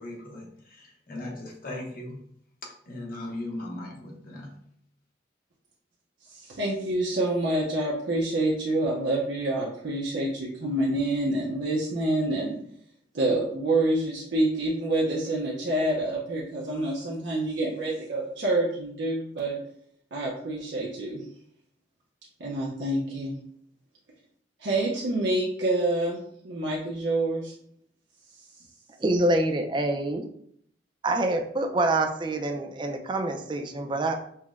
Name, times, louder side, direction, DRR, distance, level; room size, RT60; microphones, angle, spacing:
voice 1, 0.0-2.2 2.6-4.6, left 1 dB, 55° left, -1 dB, 0.9 m, -38 dB
voice 2, 6.3-12.6 13.1-19.6 20.1-21.2 22.4-23.3 24.6-26.2 26.4-27.5, right 1 dB, 70° right, -3 dB, 0.6 m, -27 dB
voice 3, 29.0-30.3 31.0-34.1, right 2 dB, 25° right, 5 dB, 0.4 m, -26 dB
5.6 x 2.1 x 2.4 m, 0.66 s
head